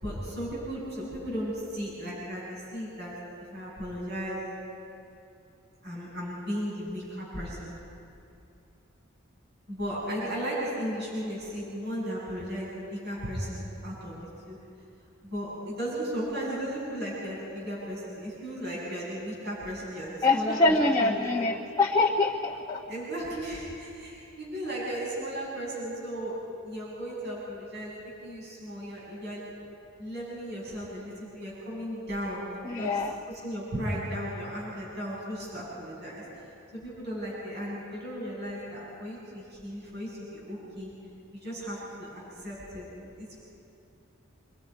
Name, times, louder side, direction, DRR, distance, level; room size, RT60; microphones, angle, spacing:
voice 1, 0.0-3.2 3.5-4.4 5.8-7.7 9.7-14.6 15.2-20.7 21.0-21.3 22.9-26.3 26.6-28.0 28.2-29.5 30.0-33.0 33.3-36.4 36.7-40.9 41.3-43.3, equal, 55° right, -6 dB, 7.8 m, -35 dB
voice 2, 20.2-22.8 32.6-33.1, left 3 dB, 20° left, -3 dB, 1.1 m, -24 dB
27.0 x 24.0 x 5.4 m, 2.7 s
head